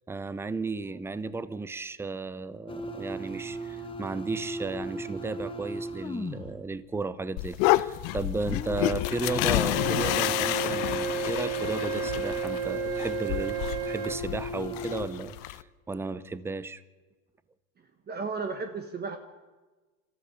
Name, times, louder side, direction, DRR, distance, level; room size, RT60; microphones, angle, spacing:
voice 1, 0.1-13.6 13.8-16.8, right 3 dB, 5° right, 16 dB, 0.6 m, -34 dB
sound 1, 2.7-6.6 8.4-15.1, left 2 dB, 10° left, 1.5 m, -36 dB
sound 2, 7.4-15.6, left 18 dB, 65° left, 0.8 m, -30 dB
Wind instrument woodwind instrument, 9.7-14.2, right 16 dB, 55° right, 2.0 m, -33 dB
voice 2, 18.1-19.2, right 4 dB, 25° right, 7 dB, 1.3 m, -33 dB
27.0 x 14.0 x 6.9 m, 1.3 s
supercardioid pair, 125°, 41 cm